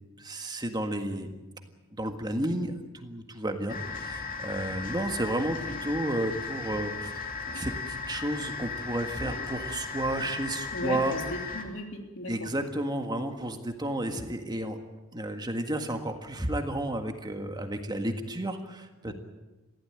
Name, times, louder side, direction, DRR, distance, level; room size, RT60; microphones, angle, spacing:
voice 1, 0.2-1.3 1.9-7.2 7.5-11.1 12.3-14.8 15.1-19.1, right 1 dB, 20° right, 5 dB, 1.7 m, -32 dB
sound 1, 3.7-11.6, left 4 dB, 40° left, 3.0 m, -36 dB
voice 2, 10.7-12.5 19.1-19.2, left 1 dB, 60° left, 3 dB, 3.1 m, -36 dB
22.5 x 15.5 x 9.1 m, 1.1 s
head